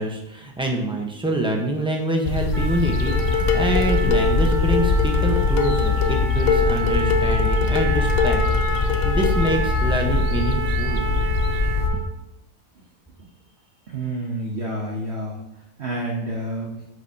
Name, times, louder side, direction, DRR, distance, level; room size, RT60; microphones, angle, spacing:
voice 1, 0.0-8.4 8.7-11.0, right 1 dB, 5° right, 1 dB, 0.9 m, -26 dB
sound 1, 2.2-11.9, left 3 dB, 50° left, 0.7 m, -22 dB
Trumpet, 2.5-12.0, right 3 dB, 65° right, 3.0 m, -30 dB
Dishes pots and pans, 3.1-9.7, left 6 dB, 70° left, 1.1 m, -25 dB
voice 2, 13.9-15.4 15.8-16.7, right 1 dB, 45° right, -2 dB, 1.2 m, -28 dB
8.2 x 7.5 x 2.9 m, 0.84 s
omnidirectional pair, 1.7 m